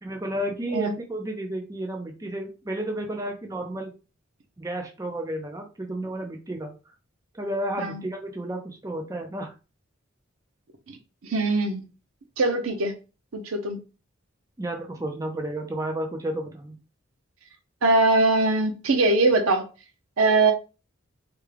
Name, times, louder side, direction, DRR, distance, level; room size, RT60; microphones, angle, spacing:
voice 1, 0.0-3.9 4.6-6.7 7.3-9.5 14.6-16.8, right 1 dB, 15° right, 0.4 m, -32 dB
voice 2, 11.2-11.8 12.4-12.9 13.3-13.8 17.8-19.6 20.2-20.5, right 3 dB, 85° right, 0.7 m, -21 dB
3.4 x 2.2 x 3.2 m
head